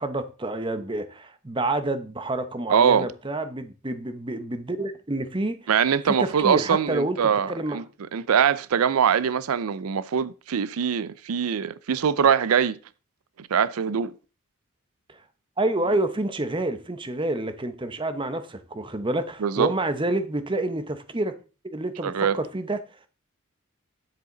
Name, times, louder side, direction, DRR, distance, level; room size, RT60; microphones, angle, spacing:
voice 1, 0.0-5.7 6.1-7.8 15.1-15.2 15.6-21.3 21.6-23.1, right 2 dB, 25° right, 0.9 m, -28 dB
voice 2, 2.7-3.1 5.7-7.8 8.1-12.8 13.4-14.1 19.4-19.7 22.0-22.4, right 7 dB, 90° right, 0.5 m, -22 dB
9.7 x 7.8 x 3.9 m
head